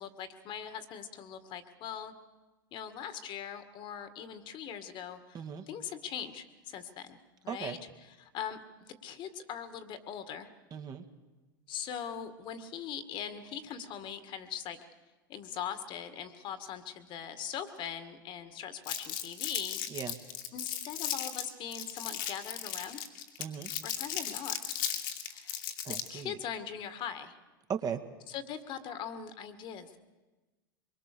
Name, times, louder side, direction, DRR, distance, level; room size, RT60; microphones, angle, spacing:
voice 1, 0.0-2.1 2.7-5.4 5.7-7.2 7.4-10.5 11.7-14.8 15.3-19.8 20.5-23.0 23.8-24.6 25.3-25.6 25.9-27.4 28.3-30.0, left 8 dB, 45° left, 10 dB, 2.1 m, -41 dB
voice 2, 5.3-5.7 7.5-7.8 10.7-11.0 19.9-20.2 23.4-23.7 25.8-26.4 27.7-28.0, right 7 dB, 35° right, 7 dB, 1.9 m, -37 dB
Crumpling crinkling, 18.9-26.2, left 10 dB, 70° left, 2.6 m, -36 dB
23.5 x 23.0 x 6.9 m, 1.2 s
hypercardioid pair, 90°, 11 cm